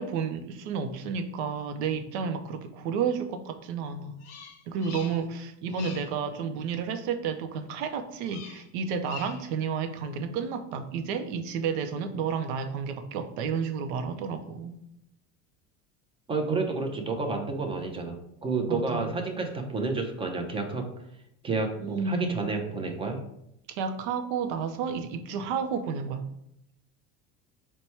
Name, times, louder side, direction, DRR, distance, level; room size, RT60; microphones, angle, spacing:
voice 1, 0.0-4.1 4.7-14.7 18.7-19.1 21.8-22.4 23.7-26.2, right 6 dB, 85° right, 8 dB, 0.6 m, -31 dB
Bird vocalization bird call bird song, 4.2-5.4 5.7-6.2 8.2-8.7 9.0-9.6, left 7 dB, 50° left, 0.6 m, -45 dB
voice 2, 16.3-20.8 21.4-23.2, right 3 dB, 15° right, 3 dB, 0.5 m, -30 dB
4.2 x 2.2 x 4.3 m, 0.77 s
cardioid pair, 135°, 33 cm